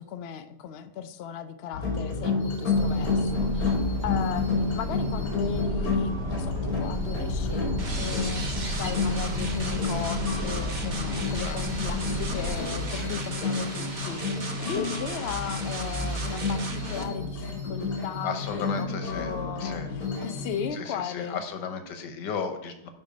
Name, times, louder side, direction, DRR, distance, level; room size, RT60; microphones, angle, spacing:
voice 1, 0.0-3.7 4.0-19.8 20.2-21.4, left 8 dB, 75° left, 9 dB, 0.5 m, -36 dB
sound 1, 1.7-20.7, left 3 dB, 50° left, 3.0 m, -30 dB
sound 2, 2.7-12.6, equal, 75° right, 1.7 m, -33 dB
sound 3, 7.8-17.0, right 3 dB, 35° right, 0.8 m, -37 dB
voice 2, 12.9-13.2 18.2-19.9 20.7-22.9, left 6 dB, 90° left, 7 dB, 1.5 m, -35 dB
9.6 x 3.9 x 5.0 m, 0.81 s
omnidirectional pair, 1.8 m